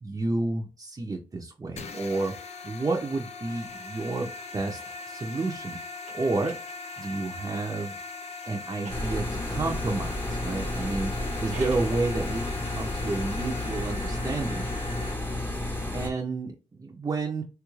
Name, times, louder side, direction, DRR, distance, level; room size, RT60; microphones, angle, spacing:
voice 1, 0.0-2.3 2.6-4.8 5.1-5.8 6.1-6.5 7.0-8.0 8.5-11.1 11.4-12.4 12.7-14.7 15.9-17.4, right 3 dB, 30° right, 0 dB, 0.6 m, -30 dB
sound 1, 1.8-15.1, left 4 dB, 65° left, 0.5 m, -40 dB
sound 2, 3.5-7.5 8.4-9.7 11.2-12.0, right 3 dB, 85° right, 1.0 m, -51 dB
sound 3, 8.9-16.1, left 1 dB, 20° left, 0.9 m, -31 dB
3.4 x 2.3 x 3.1 m, 0.33 s
cardioid pair, 70°, 12 cm